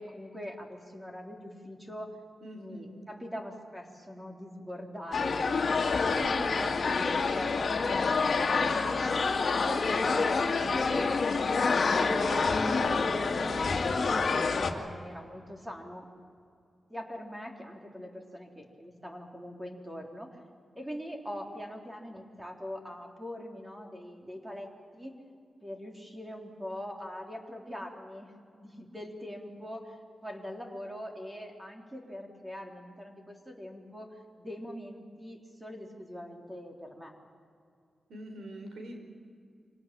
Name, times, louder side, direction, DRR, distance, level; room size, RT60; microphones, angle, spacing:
voice 1, 0.0-2.2 2.5-7.7 8.2-8.9 9.3-16.1 16.9-20.3 20.7-24.7 24.9-25.2 25.6-28.3 28.6-37.1, equal, 10° right, 1 dB, 3.6 m, -42 dB
voice 2, 2.4-3.0 38.1-39.0, right 1 dB, 85° right, 4 dB, 4.5 m, -44 dB
sound 1, 5.1-14.7, left 4 dB, 50° left, 2.1 m, -27 dB
26.0 x 18.0 x 8.9 m, 2.4 s
wide cardioid pair, 105°, 0 cm